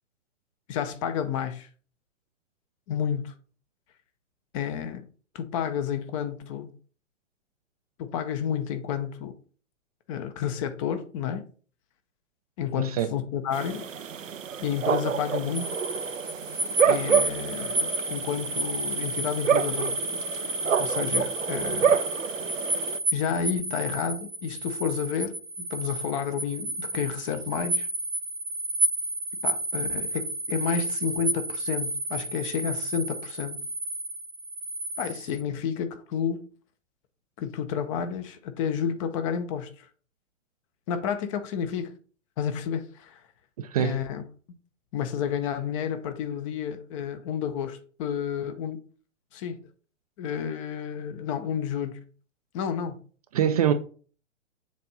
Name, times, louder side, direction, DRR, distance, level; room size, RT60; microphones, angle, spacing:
voice 1, 0.7-1.7 2.9-3.3 4.5-5.1 5.3-6.7 8.0-9.3 10.1-11.5 12.6-13.9 14.6-15.8 16.9-20.0 20.8-22.0 23.1-27.9 29.4-33.6 35.0-36.4 37.4-39.9 40.9-41.9 42.4-43.2 43.8-44.2 44.9-48.8 49.3-49.6 50.2-52.0 52.5-53.0, left 8 dB, 25° left, 0.6 m, -30 dB
voice 2, 12.8-13.1 43.6-44.0 53.3-53.7, right 9 dB, 30° right, 0.4 m, -24 dB
sound 1, 13.5-23.0, right 8 dB, 85° right, 0.6 m, -28 dB
sound 2, 15.5-35.4, right 1 dB, 80° left, 3.3 m, -31 dB
7.2 x 2.6 x 5.4 m
figure-of-eight pair, 115°, 38 cm